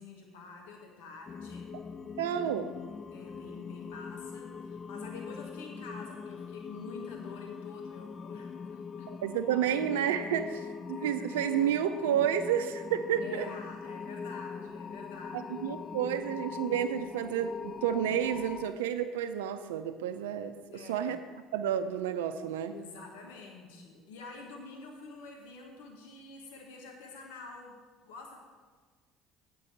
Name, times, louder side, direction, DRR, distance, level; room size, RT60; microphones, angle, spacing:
voice 1, 0.0-1.7 3.1-9.1 13.2-15.7 20.7-21.1 22.7-27.8 28.0-28.4, left 4 dB, 80° left, 1 dB, 1.2 m, -47 dB
sound 1, 1.3-18.7, left 6 dB, 35° left, 0.3 m, -42 dB
voice 2, 2.2-2.7 9.1-13.5 15.3-21.2 21.5-22.7, right 9 dB, 85° right, 8 dB, 0.4 m, -30 dB
8.4 x 5.2 x 7.7 m, 1.5 s
hypercardioid pair, 75°, 0 cm